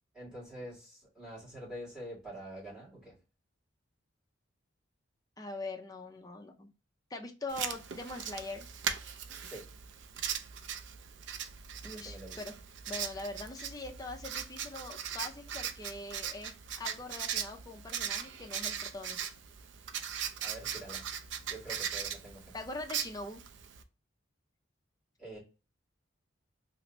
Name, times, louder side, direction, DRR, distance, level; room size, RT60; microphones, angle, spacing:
voice 1, 0.1-3.2 9.5-9.7 11.8-12.4 20.4-21.1 21.5-22.5 25.2-25.4, right 1 dB, 5° right, -6 dB, 1.7 m, -46 dB
voice 2, 5.4-6.7 7.1-8.7 11.8-12.6 12.9-19.2 22.5-23.4, left 2 dB, 20° left, 3 dB, 0.4 m, -42 dB
Writing, 7.5-23.8, right 8 dB, 65° right, 0.4 m, -39 dB
3.1 x 2.5 x 3.0 m, 0.32 s
head